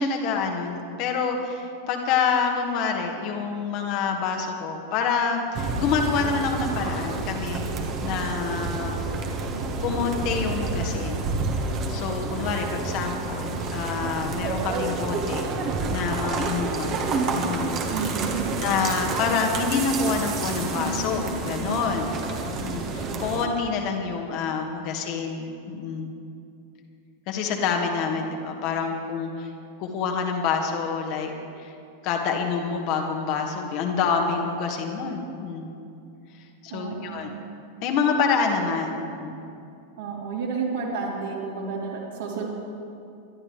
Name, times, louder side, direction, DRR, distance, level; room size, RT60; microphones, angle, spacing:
voice 1, 0.0-7.7 8.0-9.0 9.2-9.4 9.8-11.3 11.6-15.5 15.9-17.7 18.6-22.2 22.4-26.1 27.3-29.5 29.8-31.3 31.6-31.7 32.0-35.7 36.3-37.3 37.8-39.4, left 5 dB, 45° left, 2 dB, 1.7 m, -27 dB
sound 1, 5.5-23.5, right 3 dB, 35° right, 1.5 m, -29 dB
voice 2, 17.9-18.5 28.1-28.2 36.7-37.3 38.6-38.7 40.0-42.5, right 5 dB, 60° right, -4 dB, 3.4 m, -31 dB
23.5 x 11.5 x 3.3 m, 2.5 s
figure-of-eight pair, 90°, 0 cm